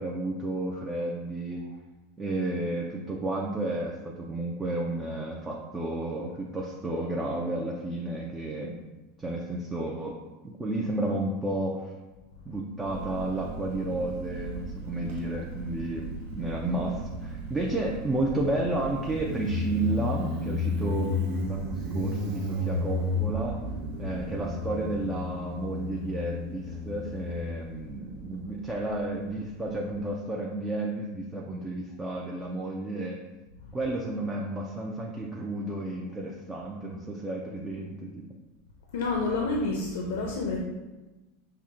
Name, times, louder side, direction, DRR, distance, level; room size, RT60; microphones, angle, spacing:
voice 1, 0.0-1.7 2.2-8.8 9.2-10.2 10.4-11.9 12.5-23.6 24.0-33.2 33.7-38.3, right 2 dB, 10° right, -2 dB, 0.4 m, -32 dB
Motorcycle, 12.8-30.0, left 2 dB, 60° right, 0.8 m, -34 dB
voice 2, 38.9-40.6, left 3 dB, 90° left, 0 dB, 0.6 m, -28 dB
5.6 x 2.2 x 3.6 m, 1.1 s
supercardioid pair, 155°, 0 cm